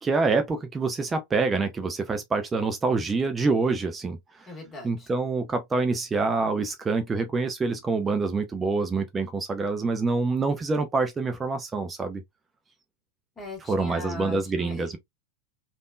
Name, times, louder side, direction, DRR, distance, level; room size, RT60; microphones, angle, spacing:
voice 1, 0.0-4.5 4.8-12.2 13.7-15.0, right 3 dB, 15° right, 0.5 m, -26 dB
voice 2, 4.5-5.1 13.4-14.9, left 2 dB, 15° left, 1.8 m, -39 dB
3.4 x 2.5 x 2.2 m
figure-of-eight pair, 90°, 0 cm